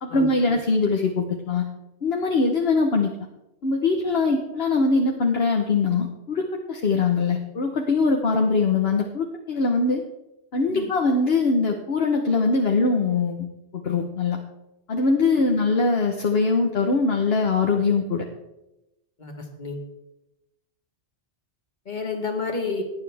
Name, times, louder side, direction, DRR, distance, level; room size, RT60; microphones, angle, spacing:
voice 1, 0.0-1.7 2.0-3.1 3.6-10.0 10.5-14.4 14.9-18.2, left 3 dB, 60° left, 2 dB, 1.3 m, -22 dB
voice 2, 19.2-19.8 21.9-22.8, left 4 dB, 40° left, 3 dB, 2.0 m, -30 dB
17.5 x 9.8 x 3.5 m, 0.92 s
omnidirectional pair, 1.2 m